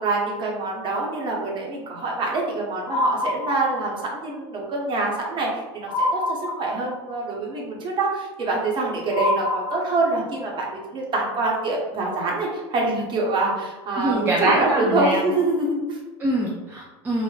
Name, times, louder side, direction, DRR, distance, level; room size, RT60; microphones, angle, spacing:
voice 1, 0.0-16.0, right 2 dB, 35° right, -2 dB, 0.8 m, -25 dB
sound 1, 2.9-4.1 5.9-7.1 9.1-10.3, left 2 dB, 75° left, 0.7 m, -26 dB
voice 2, 14.0-15.2 16.2-17.2, right 1 dB, 15° right, -3 dB, 0.4 m, -24 dB
3.1 x 2.0 x 2.3 m, 1.2 s
supercardioid pair, 105°, 14 cm